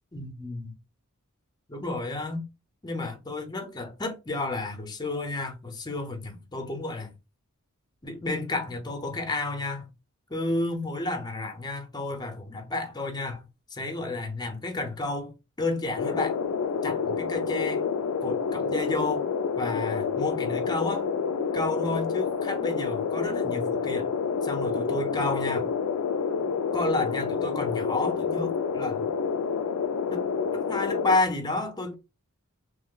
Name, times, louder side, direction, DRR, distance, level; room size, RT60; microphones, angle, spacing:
voice 1, 0.1-0.6 1.7-2.4 2.8-7.1 8.0-9.9 10.3-13.4 13.7-16.4 16.8-17.9 18.2-19.3 19.6-21.1 21.5-24.1 24.4-25.7 26.7-29.1 30.1-30.2 30.5-31.9, left 2 dB, 20° left, 0.7 m, -31 dB
sound 1, 16.0-31.2, left 5 dB, 85° left, 0.4 m, -28 dB
3.1 x 2.1 x 3.7 m
head